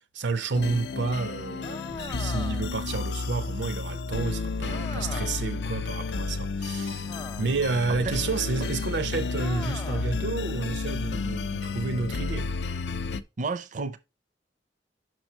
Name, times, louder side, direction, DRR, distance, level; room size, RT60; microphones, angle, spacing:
voice 1, 0.1-12.5, right 4 dB, 90° right, 0.7 m, -30 dB
sound 1, 0.5-13.2, left 4 dB, 70° left, 0.5 m, -31 dB
sound 2, 1.6-2.9 4.7-5.5 7.1-7.7 9.4-10.2, left 3 dB, 20° left, 0.6 m, -41 dB
voice 2, 13.4-14.0, right 3 dB, 45° right, 0.5 m, -31 dB
6.2 x 5.2 x 4.4 m
head